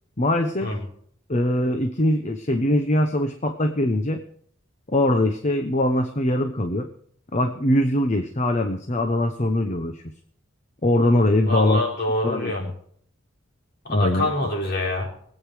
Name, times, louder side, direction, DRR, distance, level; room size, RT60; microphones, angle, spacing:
voice 1, 0.2-0.7 1.3-4.2 4.9-6.9 7.3-10.1 10.8-11.8 12.2-12.7 13.9-14.3, left 1 dB, 35° left, 6 dB, 0.9 m, -22 dB
voice 2, 11.4-12.7 13.8-15.1, left 1 dB, 50° left, -1 dB, 4.3 m, -25 dB
22.0 x 8.8 x 4.8 m, 0.63 s
head